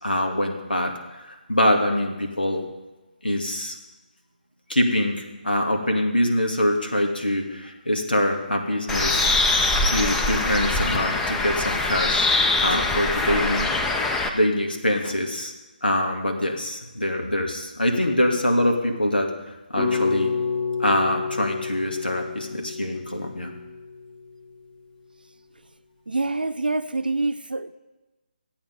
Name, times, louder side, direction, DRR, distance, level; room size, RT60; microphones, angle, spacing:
voice 1, 0.0-2.6 3.2-3.8 4.7-9.3 9.8-12.3 12.6-13.7 14.3-15.5 15.8-19.3 19.7-20.3 20.8-23.5, left 1 dB, 80° left, 2 dB, 2.3 m, -24 dB
Bird, 8.9-14.3, left 2 dB, 5° left, 0.6 m, -23 dB
sound 1, 19.8-24.0, left 5 dB, 25° left, 2.1 m, -29 dB
voice 2, 26.1-27.8, right 3 dB, 70° right, 12 dB, 0.7 m, -26 dB
15.0 x 8.7 x 5.4 m, 1.1 s
figure-of-eight pair, 145°, 5 cm